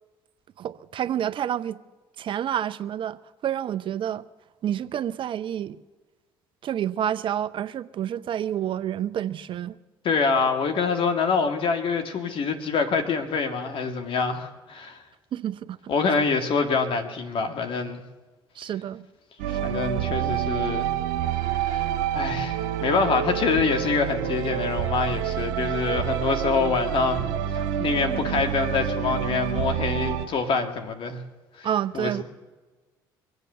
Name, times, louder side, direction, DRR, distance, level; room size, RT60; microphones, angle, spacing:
voice 1, 0.6-1.8 2.2-4.2 4.6-5.8 6.6-9.7 15.3-16.1 18.6-19.0 31.6-32.2, right 10 dB, 50° right, 0.7 m, -29 dB
voice 2, 10.0-15.0 15.9-18.0 19.5-20.9 21.5-31.2 31.6-31.7 31.9-32.2, left 5 dB, 55° left, 1.9 m, -26 dB
sound 1, 19.4-30.3, right 10 dB, 80° right, 1.6 m, -28 dB
24.0 x 8.3 x 6.8 m
hypercardioid pair, 65°, 11 cm